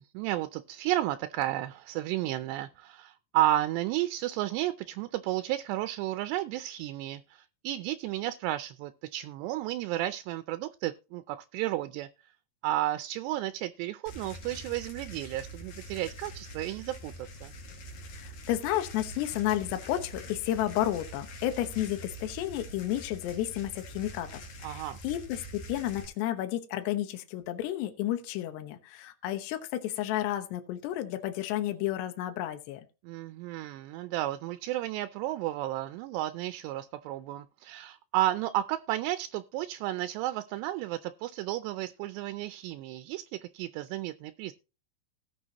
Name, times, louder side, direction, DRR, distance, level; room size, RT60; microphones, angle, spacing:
voice 1, 0.1-12.1 12.6-17.5 24.6-25.0 33.0-44.5, right 14 dB, 80° right, 11 dB, 2.6 m, -32 dB
sound 1, 14.1-26.1, equal, 55° left, 3.3 m, -45 dB
voice 2, 18.1-32.8, left 13 dB, 75° left, 7 dB, 3.1 m, -32 dB
18.0 x 6.1 x 2.9 m, 0.32 s
omnidirectional pair, 5.3 m